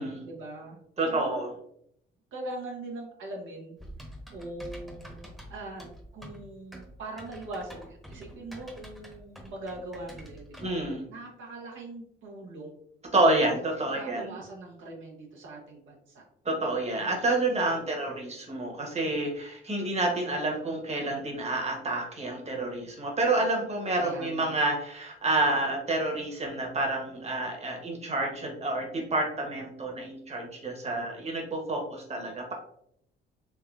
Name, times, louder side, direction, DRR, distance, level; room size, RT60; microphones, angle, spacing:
voice 1, 0.0-0.8 1.1-1.5 2.3-3.8 4.3-10.7 11.1-12.8 13.4-13.6 13.9-16.2 18.1-18.3 23.9-24.6, right 2 dB, 75° right, -1 dB, 0.9 m, -41 dB
voice 2, 1.0-1.5 10.6-11.0 13.1-14.2 16.4-32.5, right 2 dB, 35° right, 1 dB, 1.1 m, -29 dB
Typing, 3.8-10.8, equal, ahead, 0.9 m, -46 dB
3.6 x 3.0 x 2.4 m, 0.70 s
cardioid pair, 90°, 20 cm